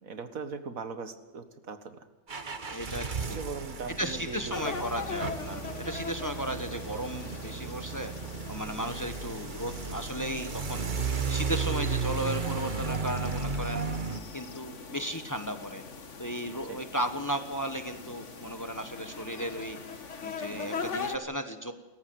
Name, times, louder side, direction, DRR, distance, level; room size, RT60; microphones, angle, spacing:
voice 1, 0.0-2.1 3.2-4.8 5.5-5.7 16.7-16.8 20.5-20.9, right 5 dB, 80° right, 9 dB, 2.0 m, -40 dB
sound 1, 2.3-14.2, right 5 dB, 40° right, 1.3 m, -34 dB
voice 2, 2.7-3.4 4.0-8.1 8.5-10.8 11.3-13.8 14.3-15.8 16.2-19.8 20.2-21.7, right 1 dB, 15° left, 7 dB, 1.3 m, -35 dB
sound 2, 4.5-21.2, left 5 dB, 60° left, 1.9 m, -41 dB
29.5 x 14.0 x 7.9 m, 1.1 s
omnidirectional pair, 1.4 m